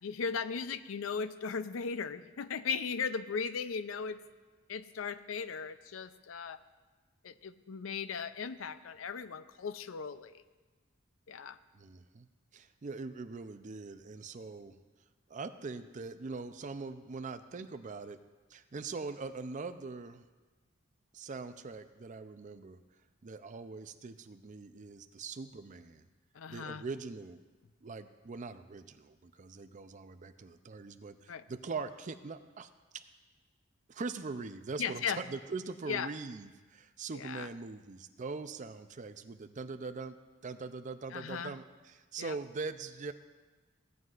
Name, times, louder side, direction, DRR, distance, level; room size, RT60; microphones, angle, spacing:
voice 1, 0.0-4.2 4.7-6.6 7.2-10.4 11.3-11.6 26.4-26.8 31.3-31.4 34.8-35.2 35.9-36.1 37.2-37.5 41.1-41.5 42.2-42.4, left 6 dB, 90° left, 13 dB, 0.5 m, -37 dB
voice 2, 11.7-12.3 12.5-14.8 15.3-18.2 18.5-20.3 21.1-22.8 23.2-26.1 26.5-27.4 27.8-33.0 33.9-40.2 40.4-43.1, right 4 dB, 40° right, 10 dB, 0.5 m, -42 dB
16.5 x 9.3 x 2.5 m, 1.3 s
head